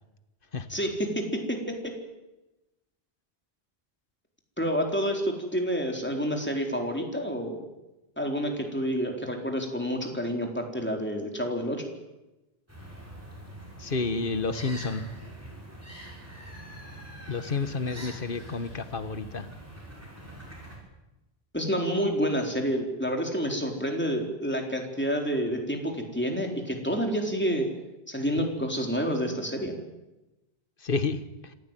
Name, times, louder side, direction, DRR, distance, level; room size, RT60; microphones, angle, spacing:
voice 1, 0.7-1.2 1.5-1.6 4.6-7.7 8.2-11.9 21.5-27.7 28.1-29.7, equal, 10° left, 2 dB, 4.1 m, -29 dB
sound 1, 12.7-20.8, right 1 dB, 15° right, 6.4 m, -44 dB
voice 2, 13.8-15.0 17.3-19.5 30.8-31.5, left 4 dB, 60° left, 11 dB, 1.6 m, -30 dB
26.5 x 16.0 x 9.2 m, 1.0 s
omnidirectional pair, 1.0 m